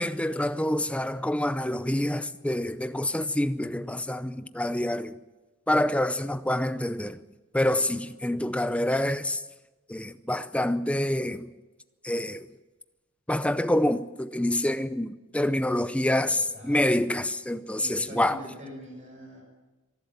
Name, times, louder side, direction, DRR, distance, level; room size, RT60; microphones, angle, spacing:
voice 1, 0.0-5.1 5.7-7.2 7.5-9.4 9.9-11.5 12.0-12.5 13.3-18.4, left 1 dB, 5° left, 0.6 m, -27 dB
voice 2, 16.2-16.8 17.7-19.4, left 1 dB, 35° right, 6.0 m, -43 dB
25.5 x 12.0 x 8.9 m
head